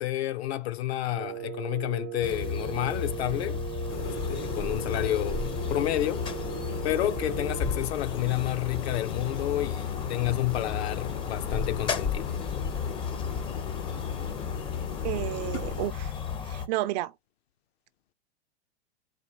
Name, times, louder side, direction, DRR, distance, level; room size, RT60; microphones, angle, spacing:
voice 1, 0.0-3.6 4.0-6.3 6.8-12.3, left 14 dB, 65° left, 0.6 m, -30 dB
Wind instrument woodwind instrument, 1.1-7.9, right 13 dB, 85° right, 0.6 m, -38 dB
sound 1, 2.2-16.7, left 6 dB, 15° left, 0.5 m, -33 dB
sound 2, 3.9-15.9, left 5 dB, 90° left, 1.4 m, -40 dB
voice 2, 15.0-16.1 16.4-17.1, right 15 dB, 40° right, 0.4 m, -31 dB
4.1 x 2.6 x 3.1 m
hypercardioid pair, 110°, 34 cm